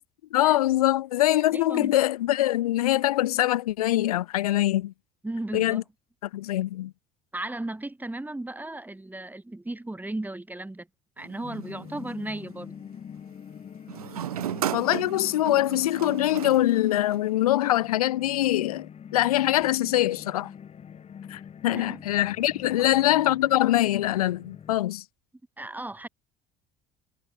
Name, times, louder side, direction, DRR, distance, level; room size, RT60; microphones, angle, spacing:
voice 1, 0.3-4.9 5.5-5.8 6.3-6.9 14.7-20.5 21.3-25.0, left 14 dB, 80° left, 0.6 m, -23 dB
voice 2, 1.5-2.0 5.2-5.8 7.3-10.9 11.2-12.7 21.7-22.0 22.8-23.0 25.6-26.1, right 2 dB, 10° right, 2.0 m, -35 dB
sound 1, 11.2-12.5 13.9-17.4, right 11 dB, 80° right, 2.0 m, -35 dB
sound 2, 11.4-24.8, left 8 dB, 35° left, 1.4 m, -45 dB
figure-of-eight pair, 60°, 19 cm